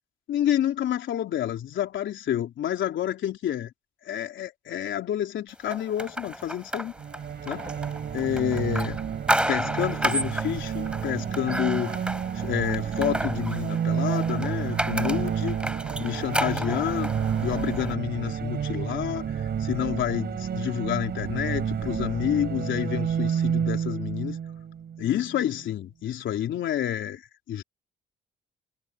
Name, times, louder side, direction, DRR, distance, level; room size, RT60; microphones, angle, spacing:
voice 1, 0.3-3.7 4.0-6.9 7.4-7.7 8.1-9.0 9.5-12.0 12.3-17.1 17.4-24.4 25.0-27.2 27.5-27.6, left 11 dB, 75° left, 3.6 m, -29 dB
sound 1, 5.7-17.9, right 1 dB, 5° right, 3.2 m, -32 dB
sound 2, 7.0-25.6, right 8 dB, 55° right, 4.0 m, -30 dB
cardioid pair, 90°, 20 cm